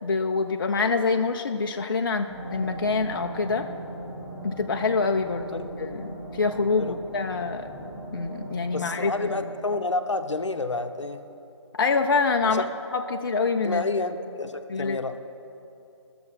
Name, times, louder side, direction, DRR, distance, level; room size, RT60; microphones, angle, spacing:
voice 1, 0.0-3.7 4.4-7.7 8.1-9.3 11.7-12.6 12.9-13.8 14.7-15.0, left 4 dB, 50° left, 5 dB, 0.5 m, -26 dB
sound 1, 2.3-9.5, right 1 dB, 15° right, 2.1 m, -38 dB
voice 2, 8.7-11.2 12.4-12.7 13.6-15.2, left 3 dB, 75° left, 8 dB, 0.7 m, -29 dB
13.0 x 6.9 x 6.3 m, 2.8 s
figure-of-eight pair, 145°, 15 cm